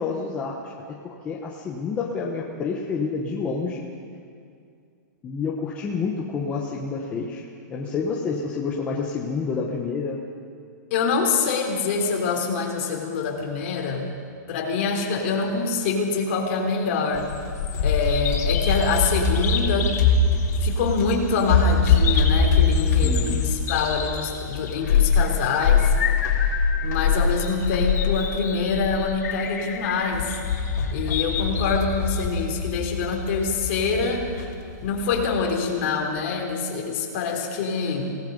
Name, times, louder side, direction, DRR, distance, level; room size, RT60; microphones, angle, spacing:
voice 1, 0.0-3.8 5.2-10.2 23.0-23.4, left 5 dB, 15° left, -2 dB, 1.1 m, -29 dB
voice 2, 10.9-14.1 14.5-17.3 17.8-19.9 20.6-25.9 26.8-30.4 30.9-34.3 34.8-38.2, left 4 dB, 40° left, 1 dB, 3.4 m, -25 dB
Bird vocalization bird call bird song, 17.2-35.3, left 5 dB, 55° left, 3.4 m, -23 dB
26.5 x 18.0 x 5.4 m, 2.3 s
hypercardioid pair, 175°, 10 cm